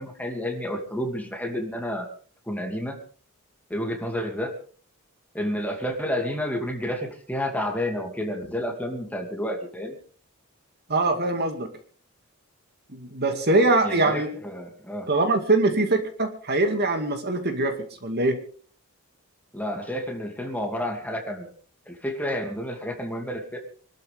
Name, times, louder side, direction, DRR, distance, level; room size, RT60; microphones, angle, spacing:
voice 1, 0.0-2.1 2.5-3.0 3.7-4.5 5.3-10.0 13.8-15.1 19.5-21.5 21.9-23.6, equal, 5° left, 3 dB, 2.6 m, -30 dB
voice 2, 10.9-11.7 12.9-14.3 15.1-18.4, right 2 dB, 50° right, 6 dB, 2.3 m, -23 dB
25.5 x 13.0 x 3.6 m, 0.43 s
head